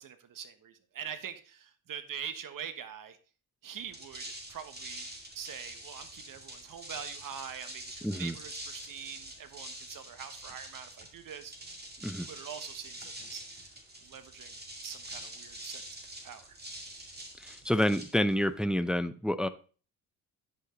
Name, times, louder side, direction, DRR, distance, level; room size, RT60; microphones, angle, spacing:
voice 1, 0.0-3.2 3.6-4.2 4.5-5.1 5.3-11.5 12.2-13.6 14.0-15.8 16.2-16.6, right 8 dB, 50° right, 10 dB, 1.2 m, -44 dB
sound 1, 3.8-18.6, right 1 dB, 25° right, 2.3 m, -45 dB
voice 2, 8.0-8.3 12.0-12.3 17.4-19.5, equal, ahead, 11 dB, 0.4 m, -28 dB
9.8 x 5.6 x 3.8 m, 0.39 s
supercardioid pair, 80°, 42 cm